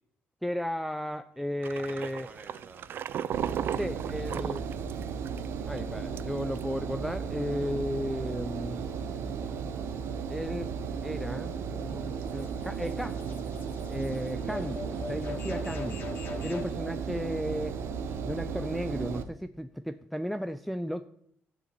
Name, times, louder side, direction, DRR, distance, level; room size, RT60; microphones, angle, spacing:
voice 1, 0.4-2.3 3.8-4.7 5.7-8.9 10.3-10.7 11.0-13.2 13.9-16.0 16.4-17.8 18.2-21.1, equal, ahead, 10 dB, 0.4 m, -34 dB
voice 2, 1.4-3.0 17.9-18.3, right 3 dB, 30° right, 7 dB, 1.6 m, -53 dB
sound 1, 1.6-5.5 5.8-5.9 6.2-6.6, right 9 dB, 55° right, 0.5 m, -35 dB
Engine, 3.3-19.2, right 6 dB, 75° right, 0.9 m, -35 dB
sound 2, 11.3-16.7, left 4 dB, 50° left, 2.4 m, -43 dB
12.0 x 5.0 x 8.2 m, 0.71 s
cardioid pair, 130°, 4 cm